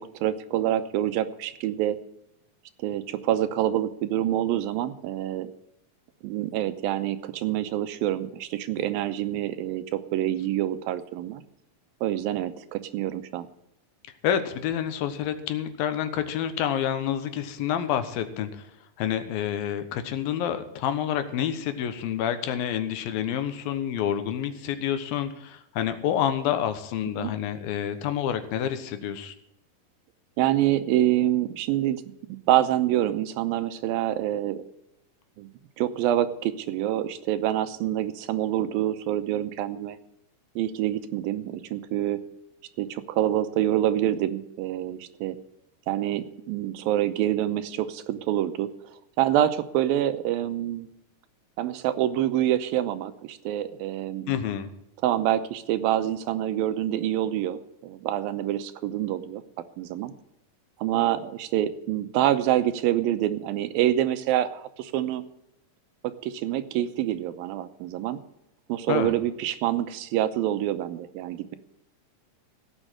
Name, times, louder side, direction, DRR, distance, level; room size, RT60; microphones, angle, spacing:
voice 1, 0.0-2.0 2.8-5.5 6.2-11.4 12.0-13.5 27.2-27.3 30.4-32.0 32.5-34.6 35.4-35.5 35.8-40.0 40.6-42.2 42.8-45.4 45.9-48.7 49.2-50.9 51.6-54.3 55.0-59.4 59.8-60.1 60.8-65.2 66.0-68.2 68.7-71.6, right 12 dB, 90° right, 12 dB, 2.6 m, -26 dB
voice 2, 14.2-18.6 19.0-29.4 54.3-54.7 68.9-69.1, left 9 dB, 85° left, 9 dB, 2.9 m, -28 dB
16.5 x 6.4 x 7.6 m, 0.83 s
omnidirectional pair, 4.1 m